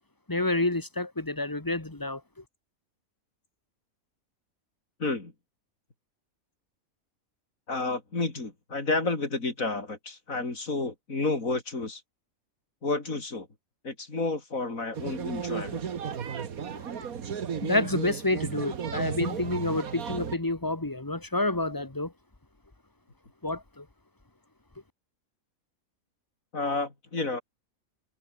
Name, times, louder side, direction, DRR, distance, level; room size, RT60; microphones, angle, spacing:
voice 1, 0.3-2.2 17.6-22.1 23.4-23.8, left 2 dB, 15° left, 1.6 m, -29 dB
voice 2, 5.0-5.3 7.7-12.0 12.8-13.5 13.8-15.9 26.5-27.4, left 3 dB, 70° left, 4.4 m, -30 dB
sound 1, 14.9-20.4, right 7 dB, 85° right, 1.9 m, -34 dB
omnidirectional pair, 1.5 m